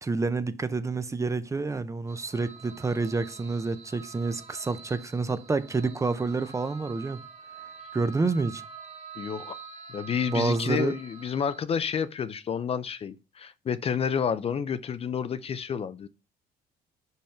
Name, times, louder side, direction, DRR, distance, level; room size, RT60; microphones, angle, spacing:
voice 1, 0.0-7.2 7.9-8.6 10.3-10.9, right 3 dB, 20° right, 0.6 m, -28 dB
sound 1, 2.1-11.6, right 6 dB, 40° right, 1.2 m, -46 dB
voice 2, 9.2-9.6 9.9-16.1, left 7 dB, 35° left, 0.5 m, -30 dB
5.5 x 5.2 x 4.4 m
cardioid pair, 110°, 17 cm